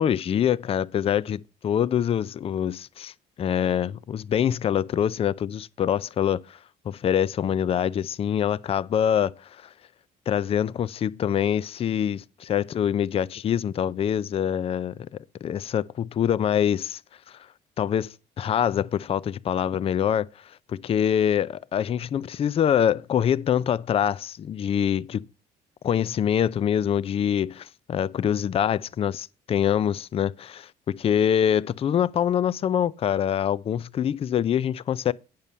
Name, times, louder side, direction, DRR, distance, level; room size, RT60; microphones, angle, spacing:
voice 1, 0.0-3.1 3.4-6.6 6.9-9.7 10.3-15.1 15.4-17.0 17.3-17.4 17.8-25.3 25.8-35.1, left 9 dB, 35° left, 0.4 m, -25 dB
9.0 x 6.9 x 5.4 m
cardioid pair, 110°, 17 cm